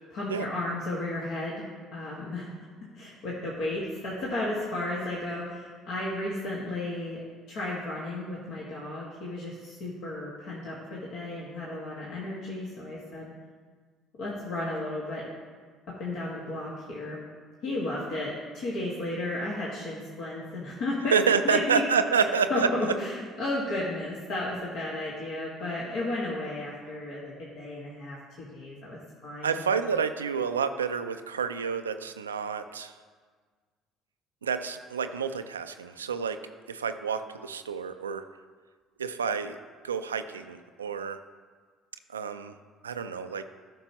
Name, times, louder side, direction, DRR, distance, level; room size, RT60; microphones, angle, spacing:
voice 1, 0.1-1.6 1.9-2.5 2.9-7.2 7.5-13.3 14.2-15.2 15.9-17.2 17.6-21.2 21.4-21.8 22.5-29.6, left 2 dB, 60° left, -5 dB, 1.7 m, -33 dB
voice 2, 21.1-22.7 29.4-32.9 34.4-36.4 36.7-38.2 39.0-39.6 39.8-41.2 42.1-42.5 42.8-43.4, right 6 dB, 90° right, 9 dB, 0.3 m, -28 dB
13.5 x 6.0 x 3.0 m, 1.5 s
hypercardioid pair, 55°, 0 cm